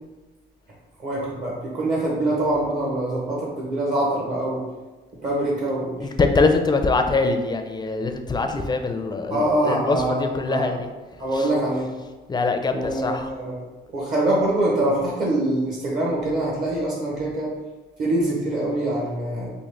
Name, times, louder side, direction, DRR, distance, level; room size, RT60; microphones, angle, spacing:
voice 1, 1.0-4.6 5.2-5.9 9.3-10.7 11.2-11.9 12.7-13.5 13.9-17.5 18.0-19.5, right 1 dB, 45° right, -4 dB, 0.9 m, -24 dB
voice 2, 6.0-10.9 11.3-11.5 12.3-13.3, left 3 dB, 20° left, 6 dB, 0.4 m, -23 dB
3.7 x 2.4 x 3.3 m, 1.2 s
cardioid pair, 90°, 20 cm